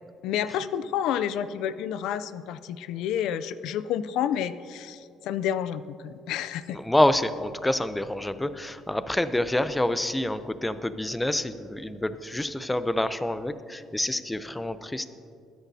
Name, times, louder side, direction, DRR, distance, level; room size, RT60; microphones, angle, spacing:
voice 1, 0.2-6.8, left 9 dB, 80° left, 14 dB, 0.4 m, -30 dB
voice 2, 6.7-15.1, left 1 dB, 10° left, 12 dB, 0.5 m, -27 dB
21.0 x 10.0 x 2.8 m, 2.3 s
cardioid pair, 115°, 0 cm